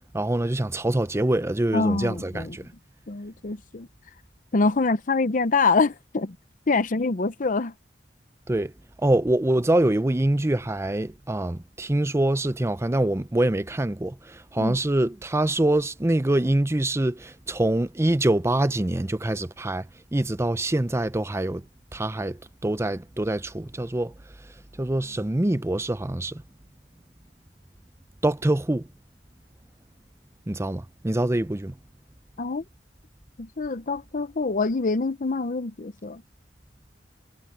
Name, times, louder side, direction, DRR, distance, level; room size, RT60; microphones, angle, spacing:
voice 1, 0.1-2.6 8.5-8.7 9.0-19.9 20.1-21.6 21.9-24.1 24.8-26.4 28.2-28.9 30.5-31.7, right 1 dB, 15° right, 0.6 m, -24 dB
voice 2, 1.7-2.6 3.1-3.9 4.5-6.4 6.7-7.7 14.6-14.8 32.4-32.6 33.4-36.2, left 3 dB, 45° left, 0.7 m, -25 dB
head